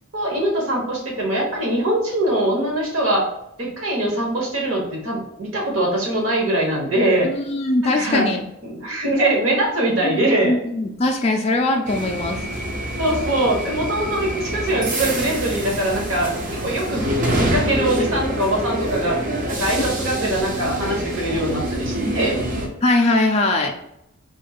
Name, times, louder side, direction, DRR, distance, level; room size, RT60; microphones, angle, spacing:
voice 1, 0.1-3.3 3.6-7.3 7.8-8.3 8.6-10.6 13.0-16.3 16.6-17.0 17.3-19.2 19.5-22.4, right 1 dB, 65° right, -2 dB, 1.3 m, -22 dB
voice 2, 7.2-8.4 10.0-10.1 10.4-12.4 19.8-19.9 22.8-23.7, left 2 dB, 30° left, 2 dB, 0.3 m, -20 dB
sound 1, 11.9-22.7, equal, 35° right, 0.6 m, -26 dB
4.2 x 3.1 x 2.4 m, 0.82 s
head